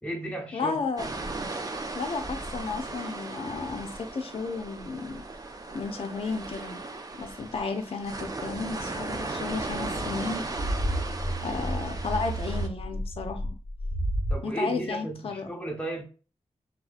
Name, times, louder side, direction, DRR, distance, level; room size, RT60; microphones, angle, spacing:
voice 1, 0.0-0.8 14.3-16.0, right 1 dB, 10° left, 1.0 m, -34 dB
voice 2, 0.5-1.1 1.7-5.2 5.7-6.8 7.2-10.5 11.4-13.6 14.4-15.5, left 4 dB, 50° left, 0.5 m, -33 dB
sound 1, 1.0-12.7, right 3 dB, 30° right, 0.4 m, -36 dB
sound 2, 9.7-14.4, right 1 dB, 70° right, 1.3 m, -31 dB
2.7 x 2.4 x 2.4 m
cardioid pair, 70°, 12 cm